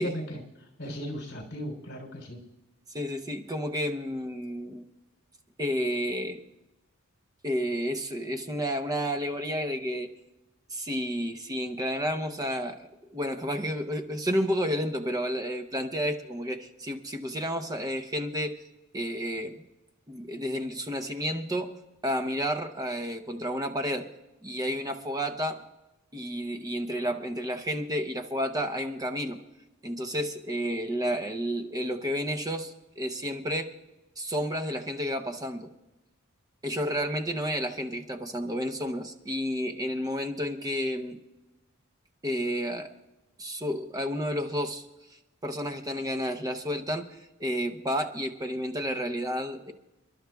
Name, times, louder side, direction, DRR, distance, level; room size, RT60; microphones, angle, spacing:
voice 1, 0.0-2.4, equal, 55° left, 1 dB, 3.4 m, -37 dB
voice 2, 2.9-4.8 5.6-6.4 7.4-10.1 10.7-18.6 18.9-19.7 20.1-21.8 22.0-24.1 24.4-25.6 26.1-29.4 29.8-33.7 34.2-35.7 36.6-41.2 42.2-42.9 43.4-49.7, equal, 20° right, 6 dB, 0.7 m, -31 dB
29.5 x 11.5 x 2.3 m, 1.0 s
head